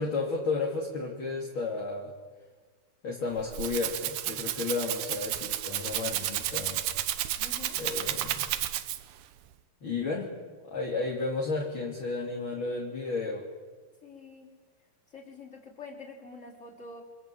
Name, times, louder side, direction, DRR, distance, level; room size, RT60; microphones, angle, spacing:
voice 1, 0.0-2.1 3.0-6.8 7.8-8.5 9.8-10.3 10.6-13.4, left 3 dB, 35° left, -1 dB, 3.1 m, -32 dB
Rattle (instrument), 3.3-9.2, right 13 dB, 70° right, 2.3 m, -32 dB
voice 2, 7.4-7.8 14.0-14.5 15.1-17.0, left 3 dB, 15° left, -1 dB, 4.4 m, -46 dB
29.0 x 26.0 x 7.8 m, 1.4 s
omnidirectional pair, 4.8 m